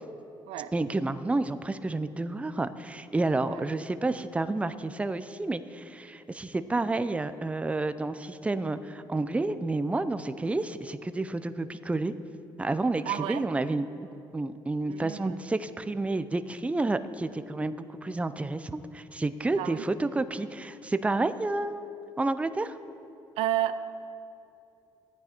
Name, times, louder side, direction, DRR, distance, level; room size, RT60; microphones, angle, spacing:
voice 1, 0.7-12.1 12.6-13.9 14.3-21.9 22.2-22.8, right 2 dB, 15° right, 12 dB, 0.5 m, -30 dB
voice 2, 13.1-13.4 14.9-15.4 19.6-19.8 23.4-24.0, right 12 dB, 85° right, 12 dB, 0.5 m, -31 dB
14.0 x 9.5 x 4.4 m, 2.7 s
cardioid pair, 80°, 10 cm